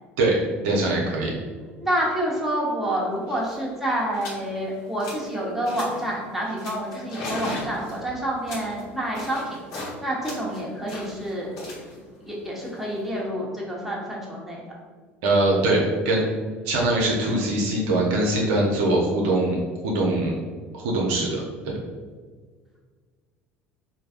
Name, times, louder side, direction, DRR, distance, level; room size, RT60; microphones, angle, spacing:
voice 1, 0.6-1.3 15.2-16.2 16.6-20.4 20.7-21.7, right 2 dB, 65° right, -2 dB, 0.7 m, -22 dB
voice 2, 1.8-9.6 10.0-11.5 12.2-14.6, right 1 dB, 5° right, -4 dB, 1.1 m, -28 dB
sound 1, 3.1-3.2 3.4-3.6 4.1-4.4 4.8-5.3 5.6-6.1 6.6-9.9 10.2-13.3, left 1 dB, 55° left, 1.3 m, -37 dB
4.4 x 2.7 x 2.5 m, 1.6 s
figure-of-eight pair, 65°, 7 cm